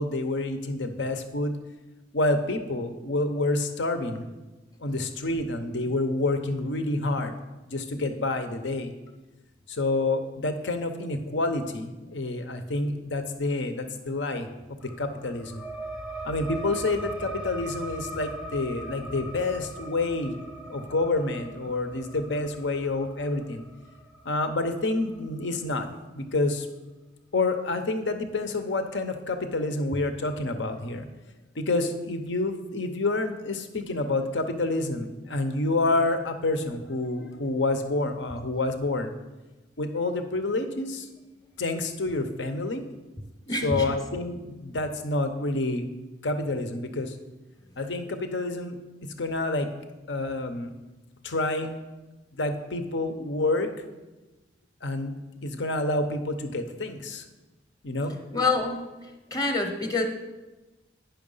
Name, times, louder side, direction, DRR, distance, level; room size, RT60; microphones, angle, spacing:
voice 1, 0.0-1.6 2.1-4.3 4.8-7.3 7.7-8.9 9.7-14.5 15.0-15.6 16.2-20.4 20.7-23.6 24.2-25.9 26.1-26.7 27.3-31.1 31.6-39.1 39.8-41.1 41.6-42.8 43.5-45.9 46.2-47.1 47.8-48.8 49.0-49.7 50.1-50.7 51.2-51.7 52.3-53.7 54.8-55.1 55.4-57.2 57.8-58.2, left 2 dB, 80° left, 7 dB, 0.8 m, -28 dB
sound 1, 14.8-25.9, right 2 dB, 5° right, 0.5 m, -40 dB
voice 2, 43.5-43.9 58.3-58.8 59.3-60.0, left 3 dB, 20° left, 4 dB, 0.8 m, -26 dB
9.0 x 5.8 x 5.5 m, 1.1 s
head